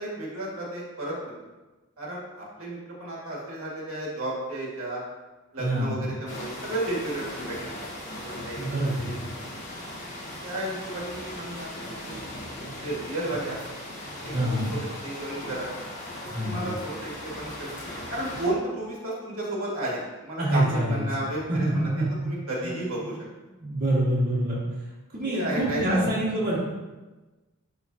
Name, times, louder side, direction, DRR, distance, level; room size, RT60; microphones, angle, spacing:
voice 1, 0.0-1.3 2.0-5.0 5.5-7.8 8.1-9.1 9.4-9.5 10.4-11.7 12.0-12.3 12.8-13.7 14.2-15.7 16.2-17.7 18.1-21.9 22.2-23.2 25.2-26.0, right 1 dB, 70° right, -4 dB, 1.9 m, -33 dB
voice 2, 5.6-6.0 8.6-9.1 14.3-14.7 16.3-16.7 20.4-21.0 21.5-21.7 22.2-22.3 22.6-22.7 23.6-24.6 25.1-26.6, right 1 dB, 40° right, -7 dB, 1.7 m, -26 dB
sound 1, 6.3-18.5, left 1 dB, 35° left, 1.7 m, -38 dB
11.5 x 3.8 x 2.8 m, 1.2 s
head